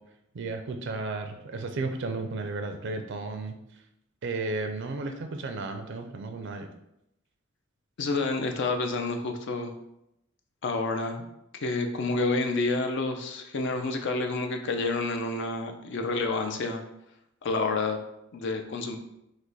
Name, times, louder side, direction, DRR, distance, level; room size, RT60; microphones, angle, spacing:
voice 1, 0.3-3.8 4.2-6.7, right 3 dB, 60° right, 6 dB, 0.4 m, -34 dB
voice 2, 8.0-9.7 10.6-11.2 11.6-16.8 17.4-18.0 18.3-19.0, left 3 dB, 60° left, 5 dB, 0.5 m, -29 dB
5.0 x 2.1 x 3.9 m, 0.83 s
head